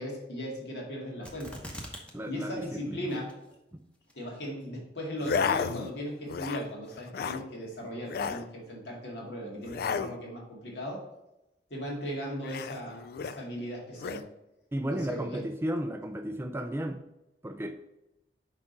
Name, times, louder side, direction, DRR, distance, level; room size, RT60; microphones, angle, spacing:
voice 1, 0.0-1.6 2.3-3.3 4.1-11.0 11.7-14.2 14.9-15.4, equal, 75° left, -2 dB, 2.0 m, -37 dB
sound 1, 1.2-2.1 2.4-2.5 3.1-3.6 4.1-4.2, equal, 5° left, 0.9 m, -42 dB
voice 2, 2.1-3.1 3.7-3.8 14.7-17.0 17.4-17.8, equal, 15° right, 7 dB, 0.4 m, -34 dB
sound 2, 5.2-5.9 6.2-6.7 7.0-7.4 8.0-8.5 9.6-10.2 12.4-13.4 14.0-14.3, left 6 dB, 55° left, 0.3 m, -32 dB
6.1 x 4.9 x 4.0 m, 0.92 s
head